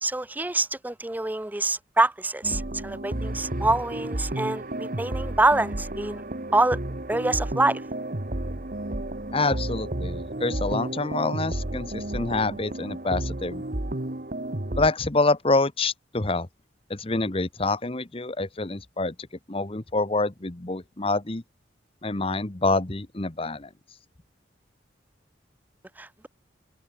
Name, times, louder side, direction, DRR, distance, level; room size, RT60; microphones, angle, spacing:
voice 1, 0.0-6.2 6.5-6.8 7.1-7.8 26.0-26.3, right 2 dB, 10° right, 0.5 m, -25 dB
sound 1, 2.4-14.9, right 1 dB, 45° right, 1.7 m, -32 dB
voice 2, 9.3-13.6 14.8-16.5 16.9-19.1 19.5-21.4 22.0-23.7, left 3 dB, 30° left, 1.1 m, -26 dB
head